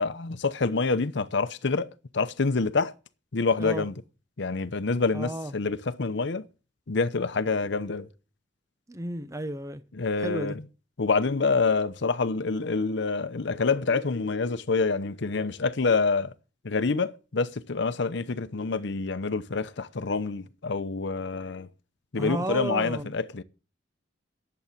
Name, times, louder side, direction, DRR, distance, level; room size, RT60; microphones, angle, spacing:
voice 1, 0.0-1.9 2.1-2.9 3.3-3.9 4.4-6.4 6.9-8.1 10.0-10.5 11.0-16.3 16.6-21.7 22.1-23.4, left 4 dB, 65° left, 0.8 m, -27 dB
voice 2, 5.1-5.5 8.9-9.8 10.2-10.5 22.2-23.1, right 1 dB, 15° right, 0.7 m, -32 dB
11.0 x 7.9 x 7.2 m
head